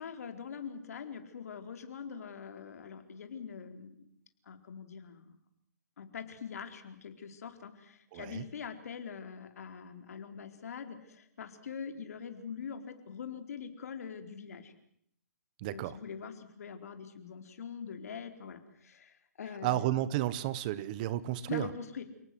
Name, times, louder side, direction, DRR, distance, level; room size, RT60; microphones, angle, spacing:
voice 1, 0.0-4.0 4.5-5.4 6.0-14.7 15.7-19.9 21.5-22.0, left 7 dB, 60° left, 7 dB, 4.4 m, -43 dB
voice 2, 8.1-8.4 15.6-16.0 19.6-21.7, right 14 dB, 30° right, 17 dB, 1.3 m, -32 dB
29.5 x 18.5 x 7.9 m, 0.69 s
hypercardioid pair, 160°, 9 cm